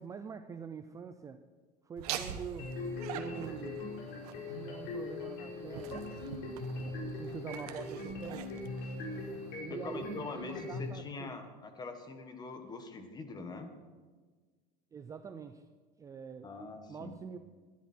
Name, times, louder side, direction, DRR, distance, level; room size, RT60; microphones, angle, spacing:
voice 1, 0.0-1.4 1.8-2.8 3.1-3.8 4.5-6.7 7.0-8.6 9.6-11.3 14.9-15.7 16.0-16.5 16.9-17.4, right 6 dB, 15° right, 9 dB, 0.5 m, -45 dB
Laughter, 2.0-9.6, right 9 dB, 90° right, 1.2 m, -45 dB
sound 1, 2.6-10.9, left 3 dB, 55° left, 4.9 m, -41 dB
voice 2, 9.7-13.7 16.4-17.1, left 4 dB, 20° left, 6 dB, 1.6 m, -43 dB
20.5 x 11.5 x 4.5 m, 1.4 s
supercardioid pair, 145°, 19 cm